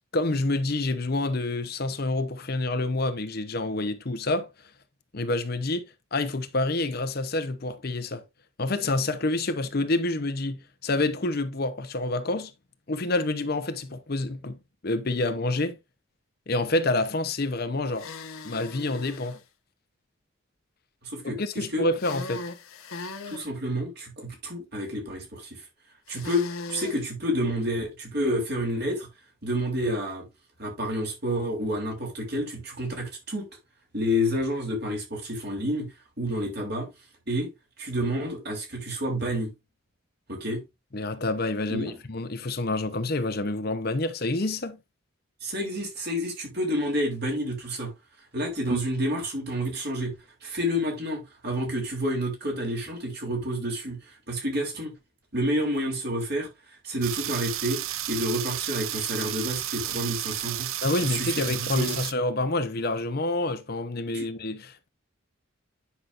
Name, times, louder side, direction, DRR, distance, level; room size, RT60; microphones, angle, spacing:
voice 1, 0.0-4.5 5.1-5.8 6.1-8.2 8.6-12.5 12.9-14.6 14.8-15.8 16.5-18.1 18.4-19.4 21.2-22.4 40.9-44.8 60.8-64.9, left 2 dB, 45° left, 0.8 m, -28 dB
sound 1, 17.9-19.4 21.9-23.4 26.1-27.0, left 3 dB, 85° left, 1.1 m, -38 dB
voice 2, 21.0-21.9 23.3-25.6 26.1-26.4 26.7-29.1 29.4-30.2 30.6-33.5 33.9-35.9 36.2-36.9 37.3-37.5 37.8-39.5 40.3-40.6 41.7-41.9 45.4-47.9 48.3-50.1 50.4-54.9 55.3-56.5 56.8-57.8 58.1-60.7 61.0-62.0 64.1-64.3, equal, 50° right, 3.2 m, -29 dB
sound 2, 57.0-62.1, right 13 dB, 80° right, 0.6 m, -32 dB
9.8 x 5.8 x 2.5 m
head